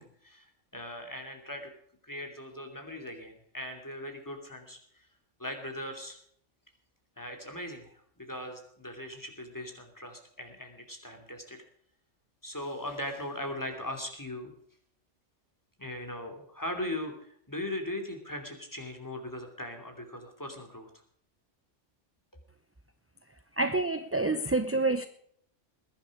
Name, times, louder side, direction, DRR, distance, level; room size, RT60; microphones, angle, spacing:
voice 1, 0.0-1.7 2.0-5.1 5.4-6.2 7.2-11.6 12.4-14.5 15.8-20.9, left 1 dB, 15° left, 2.9 m, -39 dB
voice 2, 23.6-25.1, right 2 dB, 15° right, 0.6 m, -27 dB
21.0 x 10.5 x 4.9 m
omnidirectional pair, 1.2 m